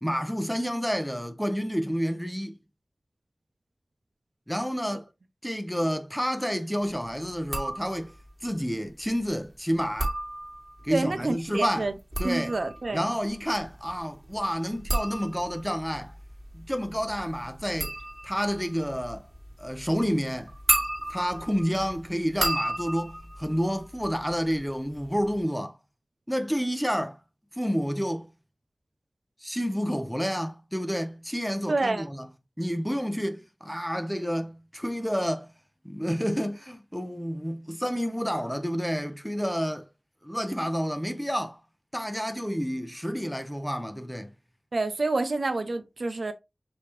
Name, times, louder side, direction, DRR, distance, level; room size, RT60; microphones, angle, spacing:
voice 1, 0.0-2.5 4.5-5.1 5.4-8.1 8.4-10.1 10.8-11.9 12.2-12.5 12.9-16.1 16.5-17.9 18.2-19.3 19.6-20.5 21.1-25.8 26.3-27.2 27.5-28.3 29.4-32.3 32.6-35.5 35.8-39.9 40.2-41.6 41.9-44.3, equal, ahead, 0.8 m, -29 dB
sound 1, 7.4-8.3 9.8-10.9 11.9-24.6 24.9-25.4, right 1 dB, 35° right, 1.9 m, -33 dB
voice 2, 10.9-11.9 12.2-13.1 31.7-32.1 44.7-46.3, right 2 dB, 80° right, 0.6 m, -28 dB
5.4 x 2.9 x 3.1 m
wide cardioid pair, 40°, 0 cm